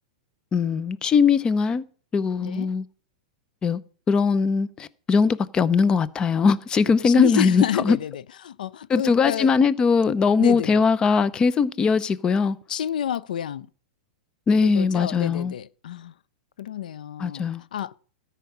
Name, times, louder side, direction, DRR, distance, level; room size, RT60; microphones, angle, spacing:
voice 1, 0.5-1.8 2.1-2.8 3.6-3.8 4.1-8.0 8.9-12.6 14.5-15.5 17.2-17.6, left 5 dB, 20° left, 0.6 m, -20 dB
voice 2, 2.4-2.7 7.0-9.5 10.4-10.8 12.7-13.7 14.6-16.2 16.6-18.0, left 9 dB, 85° left, 0.5 m, -29 dB
13.0 x 5.7 x 8.5 m
hypercardioid pair, 140°, 4 cm